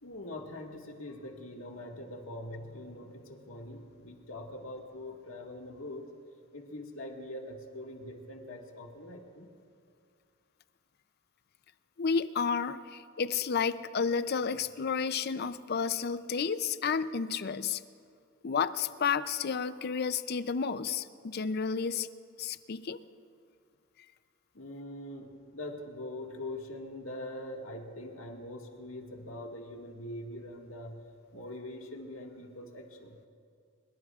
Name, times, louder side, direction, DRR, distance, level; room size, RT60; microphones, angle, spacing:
voice 1, 0.0-6.1 6.5-9.5 24.5-31.1 31.3-33.2, left 1 dB, 80° left, 1 dB, 1.8 m, -43 dB
voice 2, 12.0-17.8 18.4-22.1 22.4-23.0, left 6 dB, 50° left, 14 dB, 0.5 m, -31 dB
24.0 x 22.0 x 2.4 m, 2.4 s
head